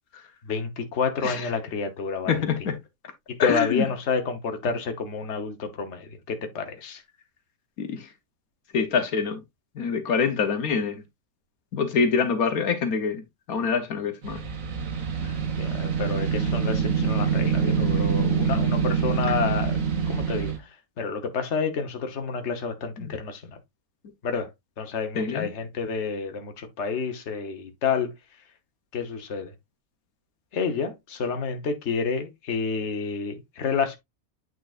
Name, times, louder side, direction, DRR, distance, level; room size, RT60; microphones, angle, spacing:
voice 1, 0.4-2.4 3.3-7.0 15.6-19.8 20.1-20.5 21.0-23.6 24.2-24.5 24.8-28.1 28.9-29.5 30.5-34.0, left 5 dB, 55° left, 1.4 m, -29 dB
voice 2, 2.3-2.7 3.4-3.9 7.8-8.1 8.7-9.4 9.8-11.0 11.7-13.2 13.5-14.4 23.0-23.1 25.1-25.5, left 5 dB, 80° left, 1.5 m, -25 dB
sound 1, 14.2-20.6, right 6 dB, 70° right, 1.7 m, -25 dB
8.7 x 4.6 x 2.5 m
omnidirectional pair, 1.5 m